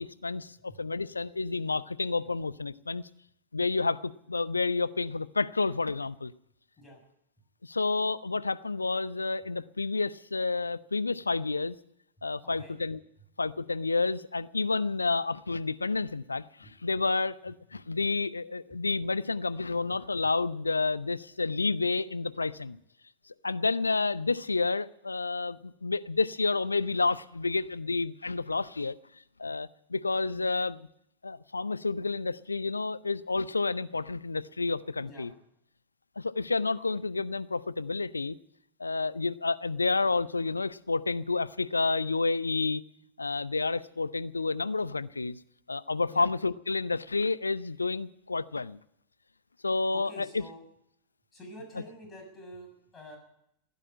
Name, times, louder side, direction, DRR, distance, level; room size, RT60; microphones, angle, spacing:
voice 1, 0.0-3.0 3.5-6.3 7.6-11.8 12.2-13.0 13.4-22.8 23.4-29.0 29.4-30.9 31.2-35.3 36.2-38.4 38.8-42.8 43.2-45.4 45.7-48.8 49.6-50.4, left 3 dB, 80° left, 0.6 m, -30 dB
voice 2, 12.4-12.8 16.6-16.7 18.7-18.8 35.0-35.3 46.1-46.3 49.9-50.6 51.3-53.2, equal, 20° left, 6.8 m, -47 dB
16.5 x 10.0 x 8.6 m
figure-of-eight pair, 90°, 0 cm